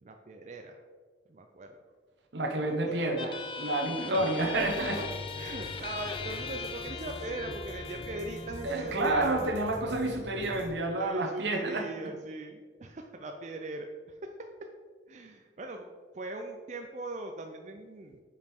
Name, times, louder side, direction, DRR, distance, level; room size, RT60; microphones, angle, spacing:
voice 1, 0.0-0.8 1.3-1.8 2.5-3.0 4.0-4.7 5.4-9.3 11.0-14.2 15.1-15.9 16.1-18.2, right 2 dB, 40° right, 4 dB, 0.4 m, -40 dB
voice 2, 2.3-5.0 8.6-11.8, right 2 dB, 80° right, 2 dB, 1.0 m, -29 dB
sound 1, 3.2-10.2, left 5 dB, 30° left, 0.4 m, -41 dB
sound 2, 3.6-10.7, left 1 dB, 75° left, 1.3 m, -44 dB
5.2 x 4.9 x 4.4 m, 1.5 s
head